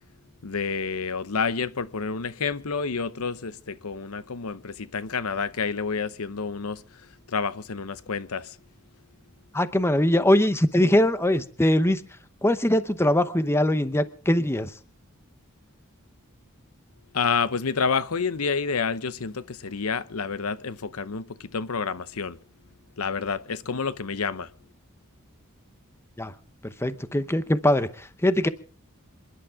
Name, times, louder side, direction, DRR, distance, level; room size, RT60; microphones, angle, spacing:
voice 1, 0.4-6.8 7.3-8.6 17.1-22.4 23.0-24.5, left 5 dB, 85° left, 0.8 m, -29 dB
voice 2, 9.5-12.0 12.4-14.7 26.2-26.3 26.6-28.5, left 1 dB, 10° left, 0.8 m, -22 dB
27.5 x 11.5 x 3.6 m
head